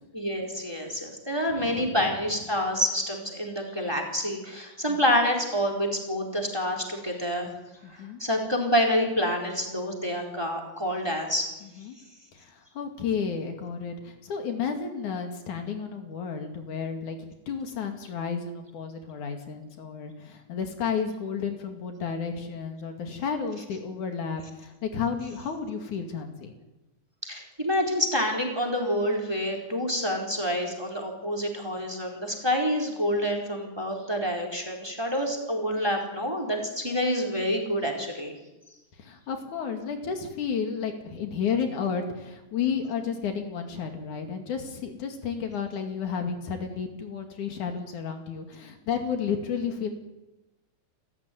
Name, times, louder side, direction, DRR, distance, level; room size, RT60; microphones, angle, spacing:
voice 1, 0.1-7.5 7.9-11.5 27.2-38.4, equal, 10° right, 2 dB, 4.1 m, -27 dB
voice 2, 1.5-2.1 4.9-5.0 8.0-8.2 11.8-12.0 12.8-17.2 17.5-26.5 39.0-49.9, left 6 dB, 75° left, 5 dB, 3.8 m, -32 dB
29.5 x 14.0 x 9.4 m, 1.0 s
omnidirectional pair, 3.5 m